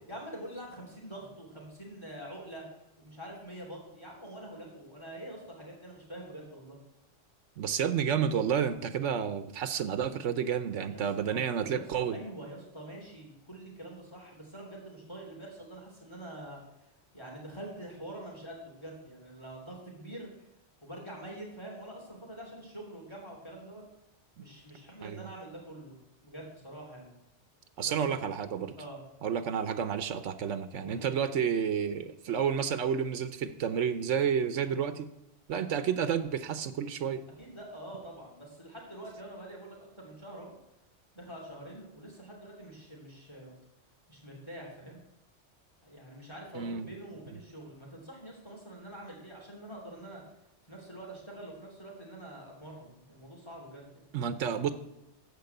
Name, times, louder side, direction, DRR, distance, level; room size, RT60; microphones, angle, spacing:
voice 1, 0.1-2.6 3.0-6.8 10.9-16.6 17.1-20.3 20.8-23.8 24.4-25.9 26.2-27.1 27.8-28.2 28.8-29.0 30.8-31.2 37.4-40.5 41.1-43.5 44.1-45.0 45.8-50.2 50.7-54.1, right 1 dB, 25° left, -2 dB, 2.9 m, -45 dB
voice 2, 7.6-12.2 24.4-24.5 25.0-25.3 27.8-28.7 29.2-35.1 35.5-37.2 46.5-46.9 54.1-54.7, right 7 dB, 90° right, 11 dB, 1.1 m, -30 dB
14.0 x 4.7 x 7.9 m, 0.89 s
omnidirectional pair, 1.2 m